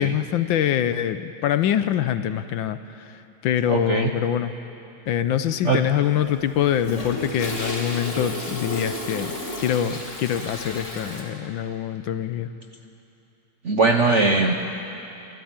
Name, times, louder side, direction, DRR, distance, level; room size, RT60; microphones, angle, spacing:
voice 1, 0.0-4.5 5.1-9.3 9.6-12.5, left 10 dB, 70° left, 12 dB, 1.4 m, -24 dB
voice 2, 3.7-4.1 5.6-5.8 13.6-14.5, right 3 dB, 50° right, 4 dB, 0.9 m, -20 dB
Toilet flush, 5.9-11.2, left 1 dB, 35° left, 2.9 m, -32 dB
26.0 x 14.0 x 8.9 m, 2.8 s
omnidirectional pair, 2.3 m